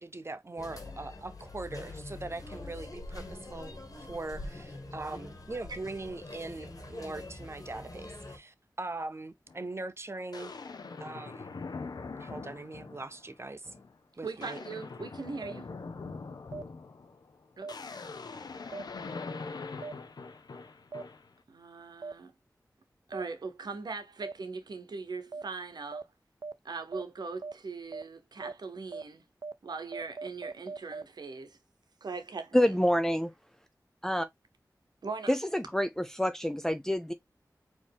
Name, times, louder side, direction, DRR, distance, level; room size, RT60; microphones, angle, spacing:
voice 1, 0.0-10.5 11.0-11.5 12.2-13.8 14.2-14.6, right 2 dB, 40° right, 0.7 m, -41 dB
sound 1, 0.6-8.4, left 2 dB, 60° left, 1.5 m, -44 dB
sound 2, 9.5-9.6 10.3-13.2 13.6-13.9 14.2-21.3, left 4 dB, 80° left, 0.7 m, -43 dB
voice 2, 14.2-15.7 17.6-17.7 21.5-22.3 23.1-26.0 26.6-29.2 29.6-31.6 32.0-32.7 35.0-35.3, right 4 dB, 85° right, 0.9 m, -40 dB
sound 3, 15.4-15.5 16.5-16.6 17.6-17.7 18.7-18.8 19.8-19.9 20.9-21.0 22.0-22.1 23.1-23.2 24.2-24.3 25.3-25.4 25.9-26.0 26.4-26.5 26.9-27.0 27.4-27.5 27.9-28.0 28.4-28.5 28.9-29.0 29.4-29.5 29.9-31.0, right 4 dB, 65° right, 0.4 m, -38 dB
voice 3, 32.5-33.3 34.0-34.3 35.3-37.1, equal, 5° left, 0.5 m, -27 dB
4.4 x 3.0 x 3.5 m
cardioid pair, 50°, 7 cm